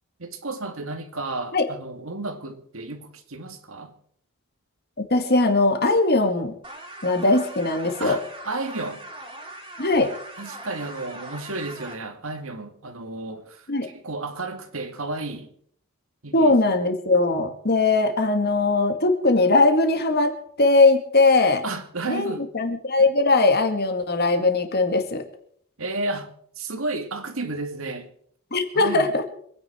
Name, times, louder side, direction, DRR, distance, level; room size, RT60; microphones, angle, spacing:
voice 1, 0.2-3.9 8.0-9.0 10.4-15.5 16.2-16.6 17.3-17.5 21.6-22.5 25.8-26.3 26.6-28.1 28.7-29.1, right 2 dB, 65° right, 2.1 m, -32 dB
voice 2, 5.1-6.5 7.0-8.2 9.8-10.1 13.7-13.9 16.3-21.6 22.1-25.2 28.5-29.2, left 3 dB, 50° left, 2.1 m, -20 dB
sound 1, 6.6-11.9, right 1 dB, 20° right, 3.3 m, -40 dB
26.0 x 10.0 x 4.5 m
head